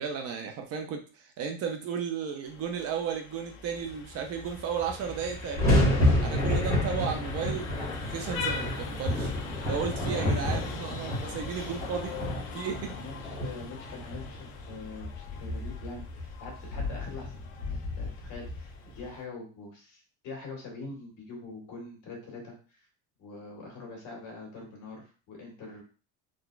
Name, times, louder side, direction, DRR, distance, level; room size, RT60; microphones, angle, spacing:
voice 1, 0.0-5.9 6.2-9.3 9.7-12.2 12.5-13.0, right 7 dB, 45° right, 4 dB, 0.4 m, -34 dB
Vehicle horn car horn honking, 2.4-19.2, left 5 dB, 35° left, 0.5 m, -43 dB
sound 1, 4.4-4.5 4.7-19.0, left 1 dB, 10° left, 1.1 m, -30 dB
voice 2, 10.0-10.3 11.5-11.8 12.9-17.4 17.7-22.9 23.2-25.8, left 3 dB, 55° left, -1 dB, 1.6 m, -44 dB
3.7 x 2.3 x 2.3 m, 0.36 s
cardioid pair, 160°, 36 cm